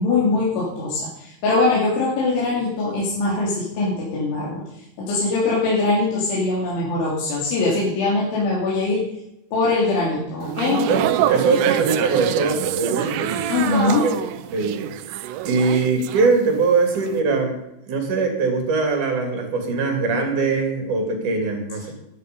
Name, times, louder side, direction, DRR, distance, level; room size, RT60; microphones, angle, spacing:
voice 1, 0.0-4.6 5.0-9.1 9.5-10.9 13.5-14.1, left 3 dB, 70° left, -6 dB, 5.4 m, -22 dB
sound 1, 10.4-16.7 17.0-17.2, right 12 dB, 85° right, 2.5 m, -26 dB
voice 2, 10.9-13.3 13.7-14.2 14.5-14.8 15.4-17.6 17.9-21.9, right 4 dB, 45° right, 3 dB, 3.8 m, -21 dB
13.5 x 11.5 x 5.4 m, 0.85 s
omnidirectional pair, 5.6 m